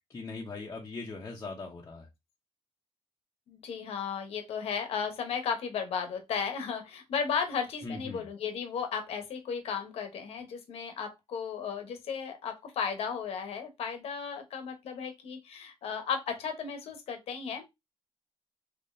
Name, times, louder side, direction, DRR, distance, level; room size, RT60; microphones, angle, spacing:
voice 1, 0.1-2.1 7.8-8.3, left 3 dB, 30° left, 0.8 m, -40 dB
voice 2, 3.5-17.7, left 6 dB, 70° left, 1.0 m, -35 dB
3.8 x 2.8 x 2.6 m
cardioid pair, 120°, 11 cm